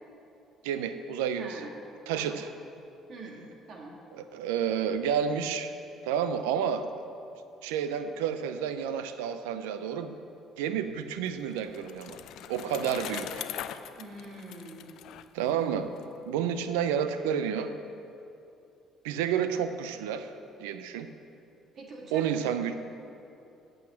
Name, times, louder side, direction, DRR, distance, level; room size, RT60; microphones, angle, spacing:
voice 1, 0.6-1.6 2.1-2.5 4.1-5.7 6.0-6.9 7.6-10.2 10.6-12.2 12.5-13.5 15.3-15.9 16.3-17.7 19.0-20.3 20.6-21.1 22.1-22.7, right 8 dB, 85° right, 10 dB, 0.5 m, -30 dB
voice 2, 1.4-1.7 2.1-2.4 3.1-4.0 14.0-15.0 21.7-22.3, right 2 dB, 55° right, -1 dB, 2.0 m, -44 dB
Bicycle, 11.0-16.0, left 11 dB, 70° left, 0.4 m, -41 dB
8.6 x 6.4 x 7.5 m, 2.8 s
hypercardioid pair, 65°, 0 cm